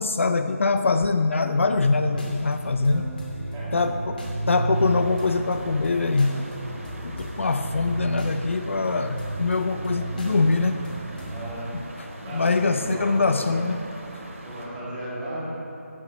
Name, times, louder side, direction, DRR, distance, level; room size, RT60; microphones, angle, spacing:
voice 1, 0.0-3.1 3.7-4.2 4.5-6.4 7.0-10.8 11.7-13.8, left 3 dB, 55° left, 9 dB, 0.5 m, -23 dB
sound 1, 1.7-11.5, right 1 dB, 40° left, 2.2 m, -33 dB
voice 2, 3.5-3.8 11.3-11.7 12.2-13.6 14.4-15.4, right 1 dB, 10° right, -9 dB, 2.1 m, -35 dB
sound 2, 4.7-14.7, right 1 dB, 65° right, 2.3 m, -41 dB
11.0 x 8.7 x 5.4 m, 2.7 s
figure-of-eight pair, 175°, 8 cm